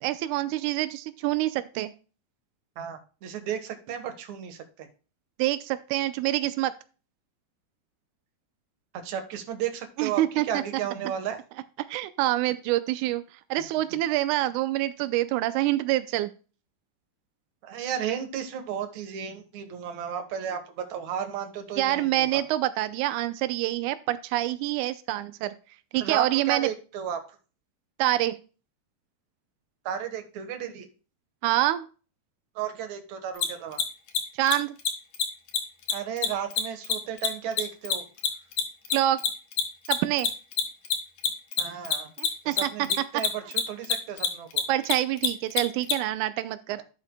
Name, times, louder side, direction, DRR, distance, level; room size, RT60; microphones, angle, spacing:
voice 1, 0.0-1.9 5.4-6.7 10.0-10.4 11.9-13.2 13.5-16.3 21.8-25.5 25.9-26.7 28.0-28.4 31.4-31.9 34.4-34.7 38.9-39.2 39.9-40.3 42.2-42.7 44.7-46.8, right 15 dB, 90° right, 12 dB, 1.7 m, -26 dB
voice 2, 2.8-4.9 8.9-11.4 17.6-22.4 26.0-27.2 29.9-30.9 32.6-33.8 35.9-38.0 41.6-42.1 42.4-44.6, right 8 dB, 60° right, 7 dB, 2.2 m, -34 dB
Mechanisms, 33.4-33.5 33.7-33.8 34.1-34.2 34.4-34.5 34.8-34.9 35.1-35.2 35.5-35.6 35.9-38.6 38.9-45.9, left 8 dB, 65° left, 2.7 m, -25 dB
11.5 x 7.6 x 2.2 m, 0.35 s
omnidirectional pair, 4.2 m